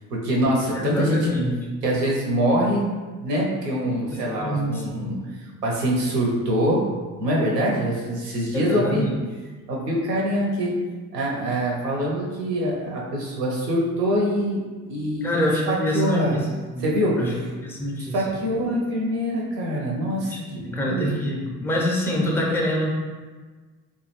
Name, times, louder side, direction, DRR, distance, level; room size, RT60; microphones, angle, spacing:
voice 1, 0.1-1.3 1.8-2.9 3.2-6.8 7.2-9.1 9.7-10.7 11.1-14.6 14.9-15.4 15.7-16.4 16.8-17.2 18.0-20.4 20.8-21.1, equal, 85° right, -2 dB, 0.6 m, -24 dB
voice 2, 0.7-1.5 4.4-5.2 8.5-9.1 15.2-16.4 16.7-16.8 17.2-17.3 17.6-18.3 20.5-22.9, equal, 5° left, -3 dB, 0.3 m, -25 dB
2.3 x 2.1 x 3.0 m, 1.4 s
figure-of-eight pair, 50°, 48 cm